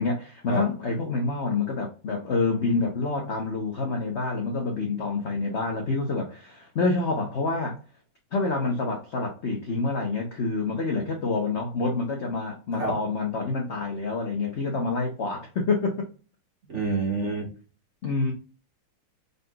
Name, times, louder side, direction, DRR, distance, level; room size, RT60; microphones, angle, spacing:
voice 1, 0.0-7.8 8.3-16.1 18.0-18.3, left 3 dB, 75° left, 0.6 m, -27 dB
voice 2, 16.7-17.5, right 2 dB, 40° right, 1.3 m, -27 dB
3.9 x 3.9 x 2.2 m
omnidirectional pair, 2.3 m